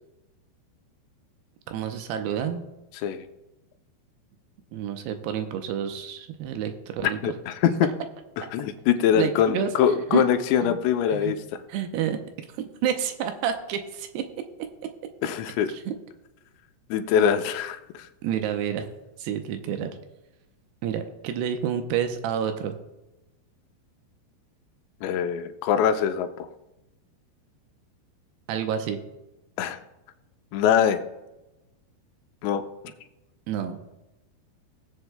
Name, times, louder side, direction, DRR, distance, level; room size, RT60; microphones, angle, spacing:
voice 1, 1.7-2.6 4.7-7.3 9.1-9.7 10.1-10.2 10.6-10.8 11.1-11.3 11.7-12.2 12.8-14.3 14.8-14.9 15.7-15.9 18.2-18.9 19.2-20.0 20.8-22.8 28.5-29.0 33.5-33.8, right 9 dB, 85° right, 7 dB, 2.6 m, -29 dB
voice 2, 7.0-7.7 8.5-11.6 15.2-15.7 16.9-18.1 25.0-26.5 29.6-29.8 30.5-31.0 32.4-32.6, left 9 dB, 85° left, 8 dB, 2.9 m, -23 dB
19.0 x 8.0 x 2.2 m, 1.0 s
omnidirectional pair, 5.0 m